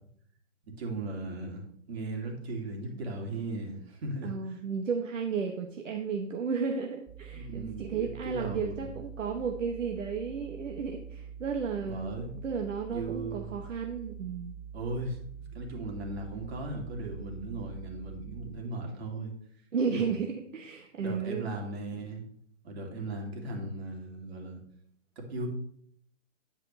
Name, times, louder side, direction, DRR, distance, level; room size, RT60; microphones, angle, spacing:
voice 1, 0.8-4.3 7.3-8.8 11.8-12.3 12.9-13.6 14.7-15.2 15.5-19.3 19.9-20.2 21.0-22.2 22.6-24.6 25.2-25.5, right 2 dB, 55° right, 2 dB, 2.7 m, -37 dB
voice 2, 4.2-14.6 19.7-21.5, right 6 dB, 75° right, 4 dB, 1.1 m, -33 dB
sound 1, 7.1-18.5, right 7 dB, 5° right, 0.8 m, -45 dB
10.5 x 7.6 x 3.2 m, 0.65 s
hypercardioid pair, 140°, 38 cm